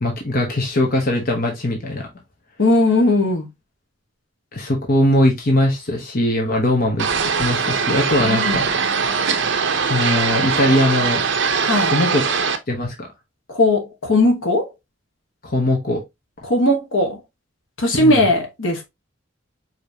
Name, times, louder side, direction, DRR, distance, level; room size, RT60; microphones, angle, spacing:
voice 1, 0.0-2.0 4.5-8.7 9.9-11.2 11.8-13.1 15.4-16.0 17.9-18.3, left 1 dB, 45° left, 1.1 m, -20 dB
voice 2, 2.6-3.5 8.2-8.6 11.6-11.9 13.5-14.7 16.4-17.2 17.8-18.8, left 1 dB, 75° left, 1.3 m, -18 dB
sound 1, 7.0-12.6, right 5 dB, 60° right, 0.7 m, -21 dB
5.1 x 3.1 x 2.8 m
head